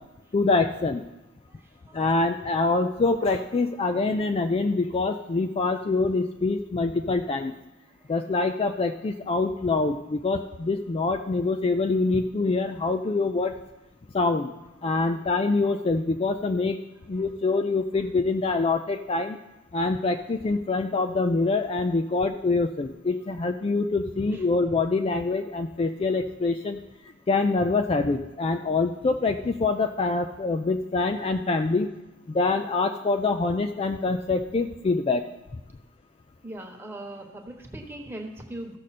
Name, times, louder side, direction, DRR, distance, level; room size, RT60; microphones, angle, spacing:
voice 1, 0.3-1.0 1.9-7.5 8.1-13.5 14.1-14.5 14.8-16.8 17.1-19.4 19.7-26.8 27.3-31.9 32.3-35.2, left 3 dB, 30° left, 6 dB, 0.3 m, -25 dB
voice 2, 1.5-2.0 8.0-8.1 14.8-14.9 24.3-24.4 36.4-38.8, right 1 dB, 10° right, 2 dB, 1.2 m, -40 dB
15.0 x 6.4 x 4.2 m, 1.0 s
head